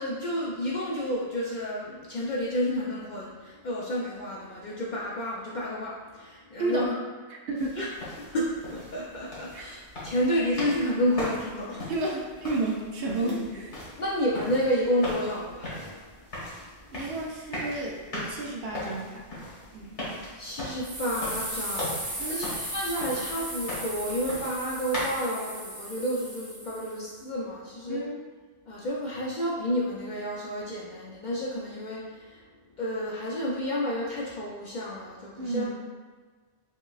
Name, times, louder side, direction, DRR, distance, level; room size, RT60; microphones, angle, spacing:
voice 1, 0.0-6.9 7.8-7.9 8.2-11.9 13.2-13.4 14.0-16.3 16.6-16.8 20.4-28.0 28.6-35.6, equal, 55° left, -5 dB, 0.5 m, -30 dB
voice 2, 6.6-7.0 7.3-7.9 9.5-9.7 11.9-13.7 16.9-19.2 19.7-20.0 22.2-22.5 27.9-28.2 35.4-35.7, right 2 dB, 65° right, -1 dB, 0.7 m, -32 dB
sound 1, 7.6-25.3, left 1 dB, 75° left, 1.5 m, -39 dB
sound 2, 20.8-27.0, right 1 dB, 20° right, 0.6 m, -36 dB
5.1 x 2.1 x 2.3 m, 1.4 s
omnidirectional pair, 1.2 m